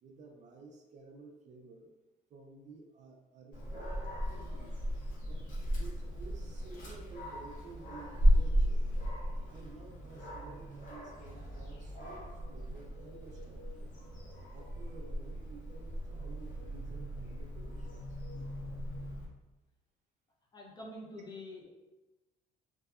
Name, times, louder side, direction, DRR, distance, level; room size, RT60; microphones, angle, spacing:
voice 1, 0.0-1.9 2.3-4.0 4.3-4.7 5.3-8.8 9.5-14.0 14.5-18.2, right 3 dB, 45° right, 2 dB, 0.4 m, -53 dB
Dog, 3.5-19.2, equal, 50° left, 0.8 m, -35 dB
voice 2, 20.5-21.7, left 1 dB, 25° left, -2 dB, 0.5 m, -46 dB
2.7 x 2.2 x 2.3 m, 1.1 s
cardioid pair, 110°, 17 cm